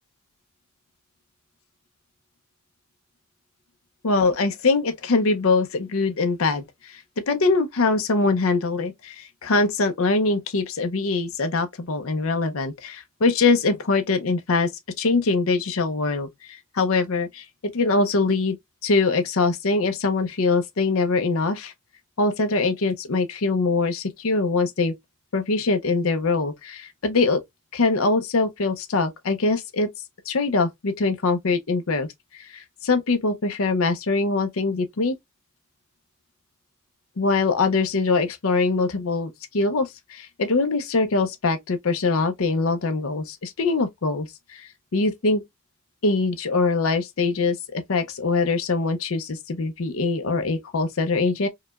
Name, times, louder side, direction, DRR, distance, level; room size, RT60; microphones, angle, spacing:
voice 1, 4.0-14.7 15.0-17.4 17.7-18.6 18.8-21.7 22.2-24.9 25.3-27.4 27.7-29.9 30.3-32.1 32.3-35.2 37.2-45.4 46.0-51.5, left 3 dB, 75° left, 0.6 m, -23 dB
4.8 x 2.2 x 2.3 m
head